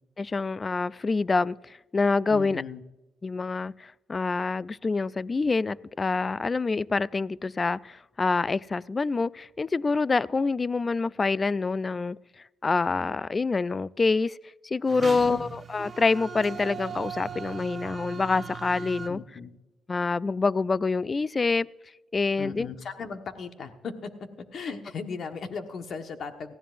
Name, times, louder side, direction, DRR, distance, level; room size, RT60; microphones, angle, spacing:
voice 1, 0.2-2.6 3.2-12.2 12.6-14.4 14.6-19.2 19.9-21.7 22.1-22.7, left 4 dB, 30° left, 20 dB, 0.3 m, -26 dB
voice 2, 2.3-2.8 15.0-15.4 19.1-19.5 22.4-24.1 24.5-26.6, left 5 dB, 55° left, 7 dB, 1.3 m, -37 dB
sound 1, 14.9-19.1, right 6 dB, 35° right, 0.9 m, -39 dB
18.5 x 14.5 x 2.6 m, 1.0 s
cardioid pair, 90°, 0 cm